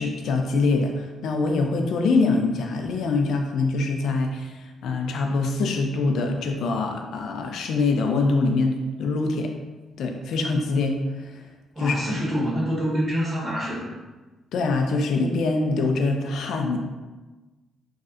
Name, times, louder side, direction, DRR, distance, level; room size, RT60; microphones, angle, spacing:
voice 1, 0.0-9.5 10.0-11.0 11.8-12.3 14.5-16.8, left 3 dB, 75° left, 3 dB, 0.3 m, -24 dB
voice 2, 11.7-13.8, equal, 30° right, -7 dB, 1.3 m, -26 dB
3.1 x 2.6 x 2.4 m, 1.2 s
cardioid pair, 90°, 0 cm